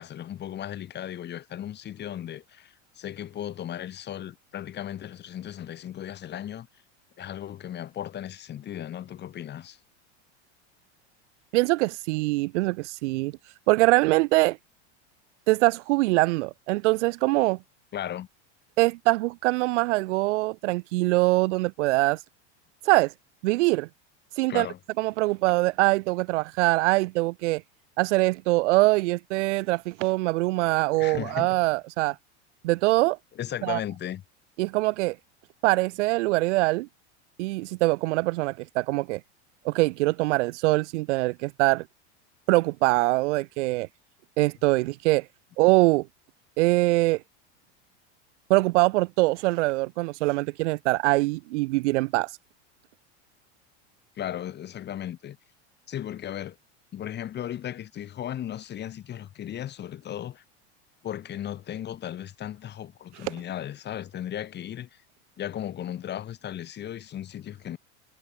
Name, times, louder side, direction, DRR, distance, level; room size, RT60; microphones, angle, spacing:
voice 1, 0.0-6.7 7.2-9.8 17.9-18.3 24.5-24.8 30.9-31.6 33.3-34.2 54.2-55.4 55.9-56.6 56.9-60.4 61.0-65.0 65.4-67.8, left 11 dB, 30° left, 2.3 m, -36 dB
voice 2, 11.5-13.3 13.7-14.6 15.5-17.6 18.8-22.2 22.9-23.1 23.4-23.9 24.4-24.7 25.0-27.6 28.0-32.2 32.6-33.2 33.6-33.8 34.6-35.2 35.6-36.9 37.4-39.2 39.6-41.9 42.5-43.9 44.4-45.3 45.6-46.1 46.6-47.2 48.5-52.3, right 22 dB, 80° right, 0.6 m, -23 dB
supercardioid pair, 135°, 35 cm